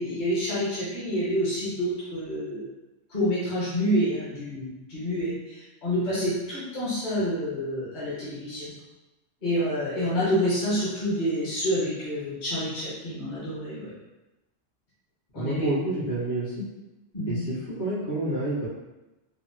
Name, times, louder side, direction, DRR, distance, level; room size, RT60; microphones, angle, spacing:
voice 1, 0.0-2.6 3.1-8.7 9.4-13.9 15.3-15.7 17.1-17.4, equal, 45° left, -9 dB, 1.0 m, -28 dB
voice 2, 15.3-16.6 17.2-18.7, right 1 dB, 60° left, -11 dB, 1.6 m, -29 dB
3.5 x 2.0 x 2.6 m, 1.0 s
omnidirectional pair, 1.3 m